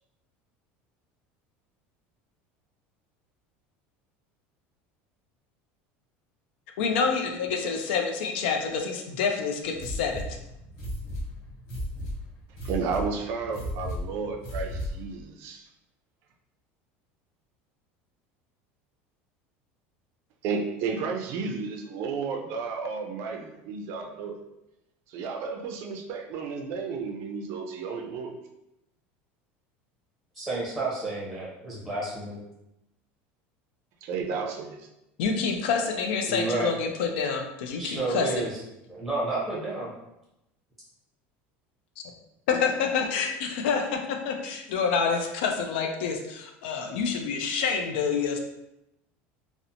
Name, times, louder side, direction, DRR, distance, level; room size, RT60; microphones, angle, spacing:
voice 1, 6.8-10.2 35.2-38.4 42.5-48.4, left 5 dB, 85° left, 4 dB, 0.4 m, -27 dB
sound 1, 9.7-15.1, left 1 dB, 55° left, 1.0 m, -35 dB
voice 2, 12.6-15.6 20.4-24.4 25.1-28.3 34.0-34.8, right 5 dB, 50° right, 3 dB, 0.4 m, -32 dB
voice 3, 30.4-32.4 36.3-36.7 37.8-38.6 38.8-39.9, right 2 dB, ahead, -7 dB, 0.7 m, -30 dB
2.8 x 2.0 x 2.5 m, 0.88 s
cardioid pair, 160°, 5 cm